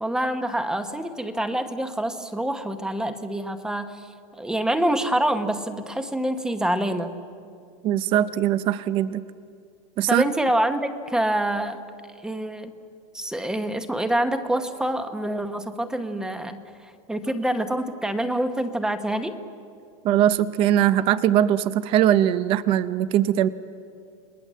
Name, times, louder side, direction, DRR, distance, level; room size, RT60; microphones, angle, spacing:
voice 1, 0.0-4.1 4.4-7.1 10.1-11.8 12.2-12.7 13.1-19.4, right 1 dB, 5° right, 8 dB, 1.0 m, -26 dB
voice 2, 7.8-9.2 10.0-10.2 20.0-23.5, right 11 dB, 30° right, 14 dB, 0.6 m, -21 dB
29.5 x 20.0 x 7.5 m, 2.3 s
supercardioid pair, 165°, 18 cm